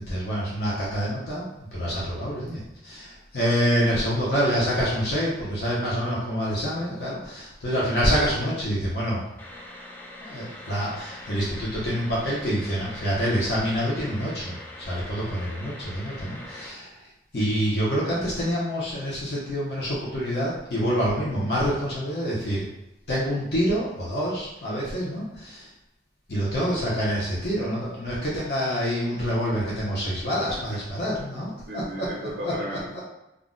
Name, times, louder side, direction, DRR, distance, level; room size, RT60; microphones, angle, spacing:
voice 1, 0.1-9.2 10.2-16.9 17.3-22.7 23.1-25.7 26.3-31.5 32.0-32.1 32.4-32.5 32.9-33.0, equal, 65° left, -6 dB, 0.7 m, -26 dB
sound 1, 9.4-16.7, left 1 dB, 10° left, 0.3 m, -42 dB
voice 2, 30.5-30.8 31.1-31.3 31.7-33.0, equal, 60° right, -4 dB, 0.5 m, -35 dB
2.4 x 2.0 x 3.7 m, 0.89 s
head